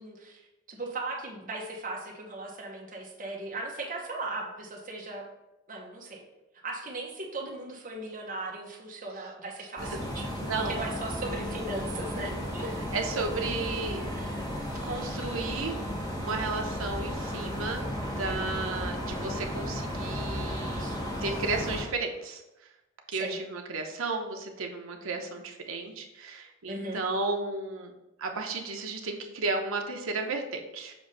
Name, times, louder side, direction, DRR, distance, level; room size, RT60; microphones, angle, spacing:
voice 1, 0.0-5.2 5.7-6.2 6.5-12.7 14.1-14.7 20.8-21.0 23.1-23.4 26.7-27.0, right 2 dB, 40° right, -1 dB, 1.2 m, -38 dB
sound 1, 9.8-21.8, equal, 20° left, 1.1 m, -34 dB
voice 2, 10.4-10.8 12.9-14.1 14.8-15.8 16.2-20.8 21.2-22.4 23.1-27.9 28.2-30.9, right 3 dB, 75° right, 3 dB, 0.8 m, -33 dB
7.1 x 2.6 x 5.4 m, 0.96 s
head